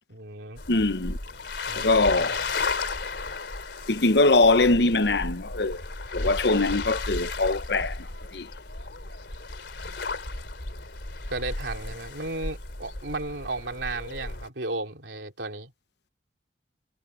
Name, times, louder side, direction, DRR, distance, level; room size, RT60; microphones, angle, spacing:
voice 1, 0.1-0.6 1.7-2.4 9.8-9.9 11.3-15.7, right 2 dB, 90° right, 3.1 m, -34 dB
sound 1, 0.6-14.5, left 3 dB, 80° left, 3.2 m, -34 dB
voice 2, 0.7-1.2 1.7-2.4 3.9-5.8 6.1-8.1 8.3-8.5, left 2 dB, 65° left, 1.1 m, -22 dB
head